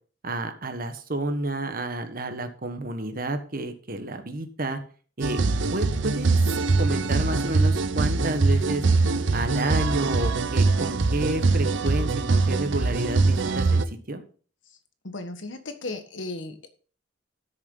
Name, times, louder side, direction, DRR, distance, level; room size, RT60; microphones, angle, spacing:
voice 1, 0.2-4.8 5.2-5.4 5.7-8.8 9.3-14.2, right 2 dB, 50° right, 8 dB, 1.3 m, -30 dB
sound 1, 5.2-13.8, right 3 dB, 80° right, 0.7 m, -23 dB
voice 2, 15.0-16.7, left 2 dB, 85° left, 7 dB, 1.5 m, -36 dB
13.0 x 6.7 x 3.9 m, 0.41 s
head